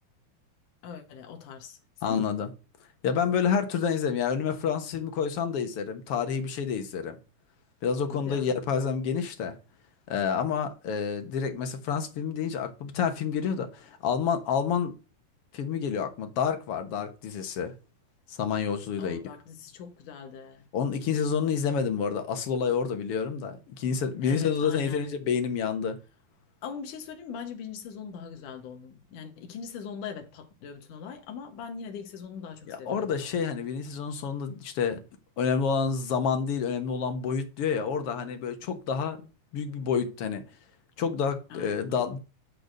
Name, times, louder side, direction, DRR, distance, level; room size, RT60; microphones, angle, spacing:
voice 1, 0.8-2.2 8.1-8.5 19.0-20.7 24.2-25.1 26.6-33.2 41.5-41.7 42.0-42.2, left 6 dB, 85° left, 2.9 m, -41 dB
voice 2, 2.0-2.5 3.0-7.2 7.8-9.6 10.1-14.9 15.5-17.7 18.3-19.2 20.7-26.0 32.7-35.0 35.4-40.4 41.0-42.2, left 6 dB, 55° left, 2.0 m, -28 dB
10.5 x 4.7 x 6.5 m
omnidirectional pair, 3.5 m